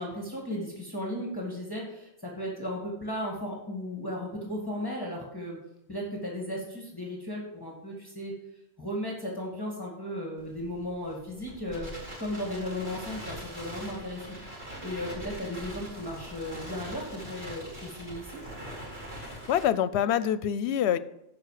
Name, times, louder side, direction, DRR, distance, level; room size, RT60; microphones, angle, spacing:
voice 1, 0.0-5.6 5.9-8.4 8.8-11.9 12.2-14.4 14.8-18.4, left 1 dB, 20° left, -2 dB, 2.0 m, -35 dB
Crackle, 10.4-19.6, equal, 65° right, 4.1 m, -42 dB
voice 2, 19.2-21.0, left 10 dB, 80° left, 16 dB, 0.9 m, -26 dB
13.5 x 5.5 x 4.9 m, 0.83 s
omnidirectional pair, 1.1 m